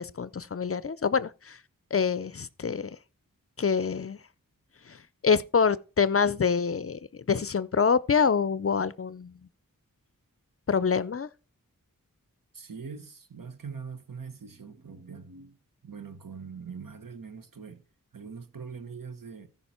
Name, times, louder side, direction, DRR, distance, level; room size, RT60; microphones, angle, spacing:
voice 1, 0.0-1.6 1.9-3.0 3.6-4.2 4.9-9.4 10.7-11.3, left 6 dB, 40° left, 0.4 m, -26 dB
voice 2, 12.5-17.9 18.1-19.5, right 5 dB, 70° right, 1.1 m, -42 dB
14.5 x 5.5 x 4.3 m
wide cardioid pair, 60°, 34 cm